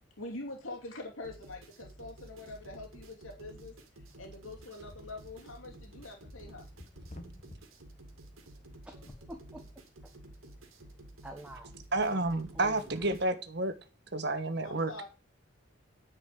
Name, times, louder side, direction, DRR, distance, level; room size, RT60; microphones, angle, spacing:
voice 1, 0.2-3.8 4.2-6.7 14.6-15.1, left 2 dB, 85° left, 2.7 m, -44 dB
sound 1, 1.2-13.2, right 1 dB, 85° right, 2.3 m, -52 dB
sound 2, 4.4-7.6 8.9-9.3, left 1 dB, 35° left, 1.4 m, -52 dB
voice 2, 8.8-10.1 10.7-10.8 11.2-11.7 12.1-12.3 12.5-13.1, right 1 dB, 5° right, 1.2 m, -49 dB
voice 3, 11.9-13.7 14.1-14.9, right 2 dB, 55° right, 1.3 m, -30 dB
10.0 x 5.3 x 7.7 m
head